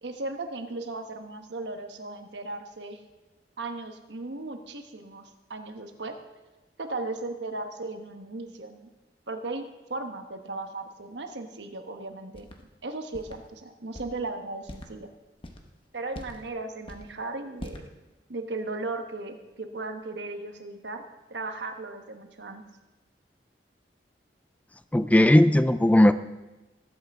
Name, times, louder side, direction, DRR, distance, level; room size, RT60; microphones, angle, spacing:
voice 1, 0.0-3.0 3.6-5.2 5.5-6.1 6.8-8.9 9.3-12.5 12.8-15.1 15.9-17.8 18.3-21.0 21.3-22.6, right 2 dB, 85° right, 6 dB, 1.2 m, -36 dB
sound 1, 12.3-12.6 13.1-13.4 13.9-14.2 14.6-14.9 15.4-15.7 16.1-16.5 16.8-17.1 17.6-17.9, left 1 dB, 30° left, 1.1 m, -42 dB
voice 2, 24.9-26.1, left 1 dB, 10° left, 12 dB, 0.3 m, -17 dB
19.5 x 8.4 x 3.6 m, 1.1 s
head